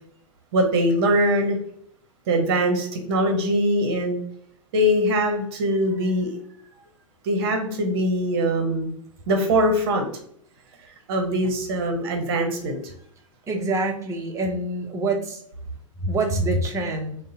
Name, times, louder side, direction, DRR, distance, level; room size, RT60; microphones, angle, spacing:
voice 1, 0.5-1.6 2.3-4.2 4.7-6.4 7.2-8.9 9.3-10.1 11.1-12.8, equal, 45° right, 4 dB, 0.9 m, -22 dB
voice 2, 13.5-15.4 16.0-17.2, right 2 dB, 20° right, 2 dB, 0.7 m, -25 dB
6.4 x 2.2 x 2.6 m, 0.65 s
figure-of-eight pair, 95°, 17 cm